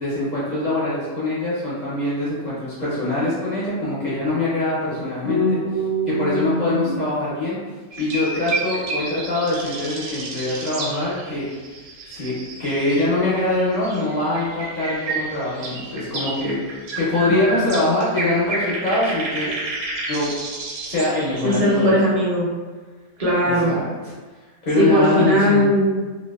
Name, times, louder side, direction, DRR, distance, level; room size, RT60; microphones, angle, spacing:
voice 1, 0.0-5.6 6.1-7.6 8.0-11.5 12.1-19.5 20.1-20.3 20.9-21.9 23.5-24.1 24.7-25.6, left 2 dB, 60° left, -9 dB, 0.4 m, -23 dB
voice 2, 5.2-7.0 17.2-17.6 21.4-22.5 23.2-23.7 24.8-25.9, equal, 45° right, -6 dB, 0.4 m, -20 dB
sound 1, 7.9-13.2 13.5-21.9, right 2 dB, 85° right, 1.1 m, -31 dB
2.6 x 2.2 x 2.3 m, 1.4 s
omnidirectional pair, 1.5 m